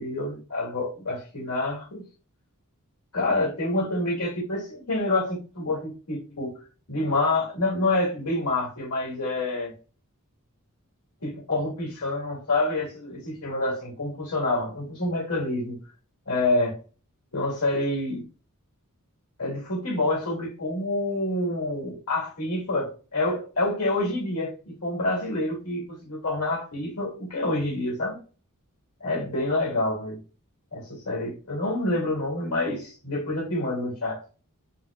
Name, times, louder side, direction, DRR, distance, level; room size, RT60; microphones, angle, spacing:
voice 1, 0.0-2.0 3.1-6.5 6.9-9.7 11.2-15.8 16.3-16.8 17.3-18.2 19.4-28.2 29.0-30.2 30.7-34.2, left 2 dB, 90° left, 1.9 m, -27 dB
3.9 x 2.1 x 3.5 m
head